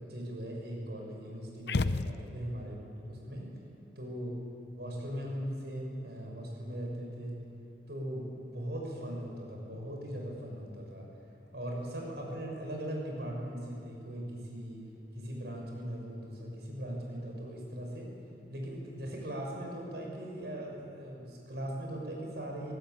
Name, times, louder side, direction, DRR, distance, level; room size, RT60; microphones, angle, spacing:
voice 1, 0.0-3.5 3.9-4.3 4.8-7.4 7.9-11.1 11.5-14.9 15.1-18.1 18.5-22.7, equal, 65° right, 0 dB, 6.6 m, -39 dB
sound 1, 1.7-2.7, left 3 dB, 65° left, 0.7 m, -32 dB
22.5 x 18.5 x 9.5 m, 2.6 s
head